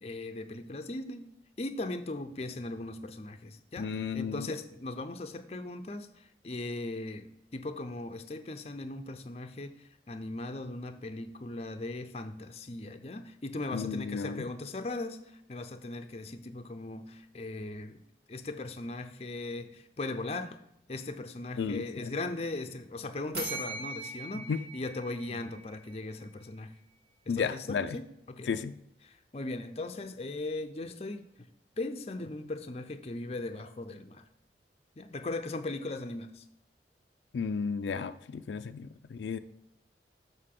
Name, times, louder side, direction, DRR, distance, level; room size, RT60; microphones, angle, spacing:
voice 1, 0.0-1.3 1.6-18.0 18.3-20.6 20.9-26.7 27.3-28.5 29.0-31.5 31.8-34.2 35.0-36.4, left 2 dB, 35° left, 8 dB, 0.5 m, -38 dB
voice 2, 3.8-4.5 13.7-14.4 21.6-22.1 24.5-24.6 27.3-27.9 28.5-28.7 37.3-39.4, left 5 dB, 85° left, 10 dB, 0.4 m, -33 dB
sound 1, 23.3-26.1, right 3 dB, 60° right, 1.6 m, -40 dB
6.6 x 6.6 x 3.7 m, 0.80 s
head